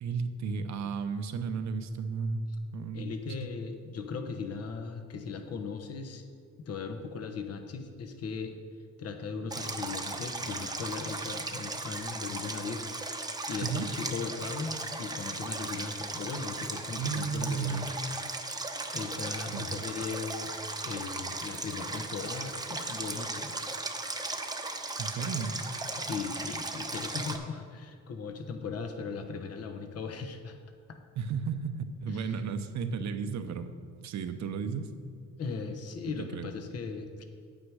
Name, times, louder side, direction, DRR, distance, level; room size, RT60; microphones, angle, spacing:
voice 1, 0.0-2.4 2.7-3.1 3.4-3.5 13.6-13.9 17.0-17.9 19.5-19.7 25.0-25.5 31.2-33.7 34.0-34.9 36.2-36.5, right 5 dB, 65° right, 9 dB, 0.9 m, -33 dB
voice 2, 2.9-6.2 6.6-8.5 9.0-12.9 13.2-17.8 18.9-20.5 20.8-23.6 26.0-30.6 30.9-31.0 32.1-32.4 35.4-37.1, left 5 dB, 55° left, 6 dB, 1.0 m, -38 dB
Stream, 9.5-27.4, right 2 dB, 15° right, 0.9 m, -37 dB
9.2 x 8.9 x 4.8 m, 2.1 s
cardioid pair, 90°, 30 cm